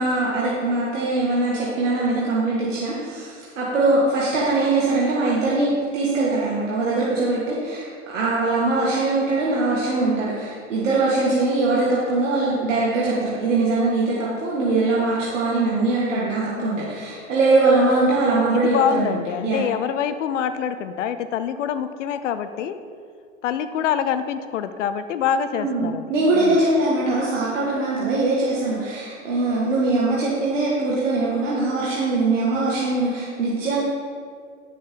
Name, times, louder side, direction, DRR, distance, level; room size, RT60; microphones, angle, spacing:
voice 1, 0.0-19.6 25.5-33.8, right 2 dB, 85° right, -6 dB, 2.0 m, -22 dB
voice 2, 18.3-22.8 23.4-26.6, left 8 dB, 80° left, 11 dB, 0.7 m, -25 dB
12.0 x 6.5 x 3.9 m, 2.1 s
hypercardioid pair, 100°, 36 cm